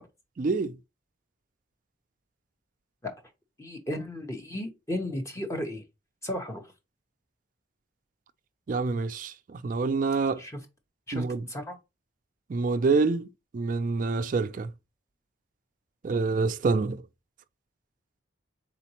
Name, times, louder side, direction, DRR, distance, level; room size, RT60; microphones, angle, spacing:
voice 1, 0.4-0.8 8.7-10.4 11.1-11.4 12.5-13.3 13.5-14.7 16.0-17.0, right 4 dB, 40° right, 0.3 m, -26 dB
voice 2, 3.6-5.8 6.2-6.7 10.4-10.6 11.1-11.8, left 1 dB, 15° left, 0.9 m, -34 dB
4.1 x 4.0 x 2.9 m
head